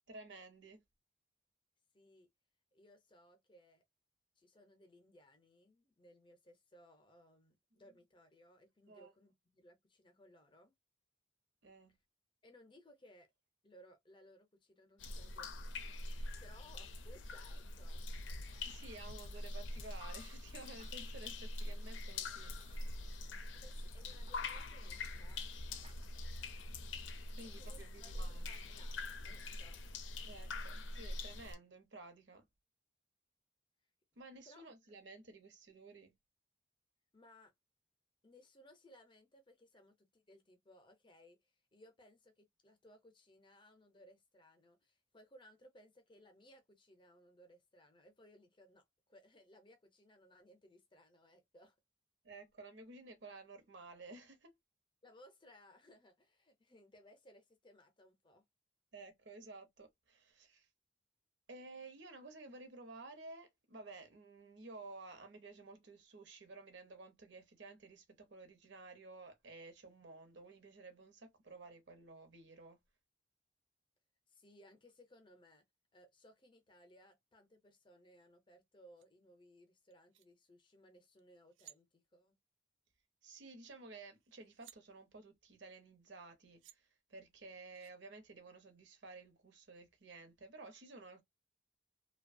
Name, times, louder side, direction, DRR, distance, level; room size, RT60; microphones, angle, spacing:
voice 1, 0.1-0.8 7.8-8.0 8.9-9.1 11.6-12.0 18.6-23.0 27.4-28.6 30.2-32.4 34.2-36.1 52.2-54.6 58.9-60.7 61.5-72.8 83.2-91.2, right 3 dB, 70° right, 0.8 m, -54 dB
voice 2, 1.9-2.3 2.7-3.8 4.4-10.7 12.4-13.3 13.6-15.7 16.4-18.1 23.5-25.5 27.6-29.8 34.5-34.7 37.1-37.5 38.2-51.8 55.0-58.4 74.3-75.6 75.9-82.4, equal, 25° left, 0.6 m, -63 dB
sound 1, 15.0-31.5, left 2 dB, 90° left, 0.5 m, -44 dB
sound 2, 18.3-25.5 25.7-26.1, right 4 dB, 30° right, 0.4 m, -66 dB
sound 3, 79.0-79.1 79.9-80.3 81.2-81.3 81.5-81.8 83.7-83.8 84.1-84.8 86.2-86.3 86.6-86.8 87.7-87.9, right 12 dB, 90° right, 0.4 m, -60 dB
2.7 x 2.2 x 2.5 m
head